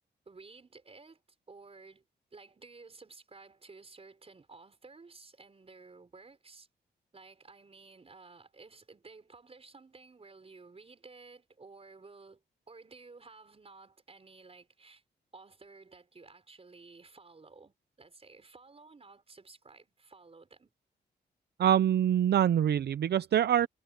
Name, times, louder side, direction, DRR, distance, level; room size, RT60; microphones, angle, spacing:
voice 1, 0.3-1.2 1.5-2.0 2.3-6.7 7.1-15.0 15.3-20.7, right 4 dB, 35° right, 5.2 m, -54 dB
voice 2, 21.6-23.7, right 10 dB, 65° right, 0.6 m, -25 dB
cardioid pair, 95°, 18 cm